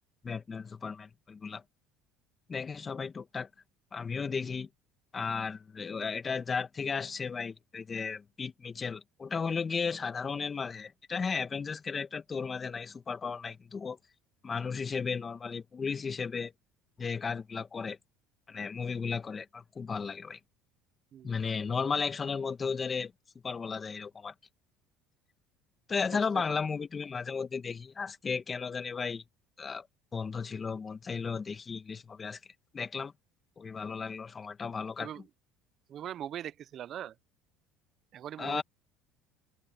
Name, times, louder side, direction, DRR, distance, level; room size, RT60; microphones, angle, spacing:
voice 1, 0.2-1.6 2.5-3.5 3.9-4.7 5.1-14.0 14.4-16.5 17.0-18.0 18.5-20.4 21.2-23.1 23.4-24.3 25.9-29.2 29.6-29.9 30.1-32.4 32.7-33.1 33.6-35.1 38.4-38.6, left 5 dB, 30° left, 1.5 m, -34 dB
voice 2, 35.9-37.1 38.1-38.6, right 10 dB, 50° right, 0.7 m, -40 dB
supercardioid pair, 85°, 0 cm